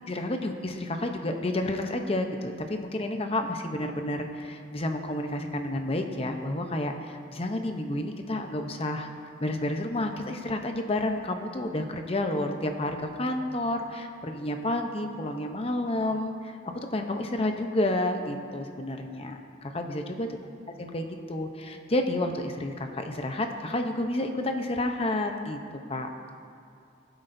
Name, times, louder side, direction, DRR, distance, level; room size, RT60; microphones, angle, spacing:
voice 1, 0.1-9.1 9.4-16.6 16.9-20.3 20.8-25.6 25.9-26.1, left 1 dB, 35° left, 5 dB, 0.8 m, -30 dB
19.5 x 8.0 x 2.7 m, 2.5 s
head